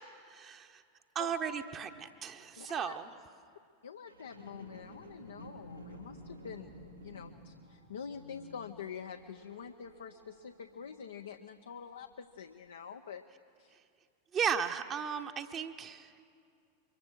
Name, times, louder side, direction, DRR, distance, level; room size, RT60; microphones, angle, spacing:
voice 1, 0.3-0.8 1.1-3.1 14.3-16.2, right 7 dB, 30° right, 6 dB, 1.1 m, -35 dB
voice 2, 2.6-2.9 3.8-13.2 13.6-13.7, left 7 dB, 65° left, 6 dB, 0.8 m, -46 dB
sound 1, 4.1-11.5 12.1-12.2, equal, 90° right, 3.9 m, -52 dB
24.5 x 22.5 x 6.4 m, 2.3 s
figure-of-eight pair, 90°, 0 cm